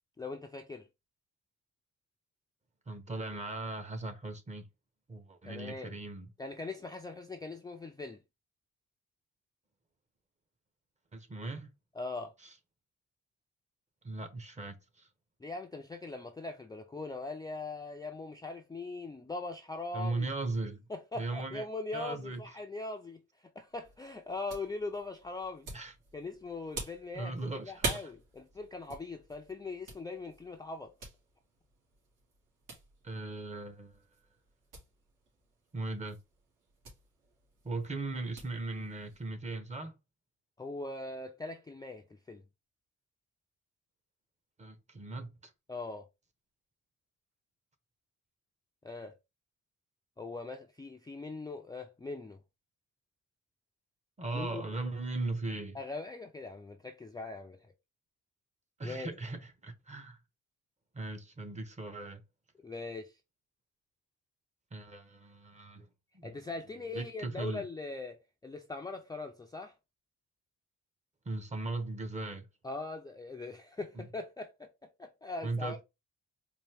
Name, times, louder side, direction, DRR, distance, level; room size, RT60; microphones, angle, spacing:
voice 1, 0.2-0.9 5.4-5.9 6.4-8.2 11.9-12.3 15.4-20.3 20.9-23.2 23.6-25.7 26.1-27.3 27.6-30.9 40.6-42.4 45.7-46.1 48.8-49.1 50.2-52.4 54.3-54.6 55.7-57.6 58.8-59.1 62.6-63.1 66.2-69.7 72.6-74.7 75.0-75.8, left 3 dB, 15° left, 0.4 m, -41 dB
voice 2, 2.9-4.6 5.1-6.3 11.1-11.7 12.4-12.5 14.0-15.1 19.9-20.8 21.2-21.6 21.9-22.6 25.7-25.9 27.1-28.1 33.0-34.0 35.7-36.2 37.6-40.0 44.6-45.5 54.2-55.8 58.8-60.2 60.9-62.2 64.7-65.9 66.1-66.4 66.9-67.6 71.3-72.5 73.9-74.1 75.4-75.8, right 2 dB, 20° right, 0.8 m, -38 dB
sound 1, 23.7-39.3, right 3 dB, 75° right, 2.2 m, -46 dB
4.3 x 2.6 x 3.3 m
cardioid pair, 125°, 32 cm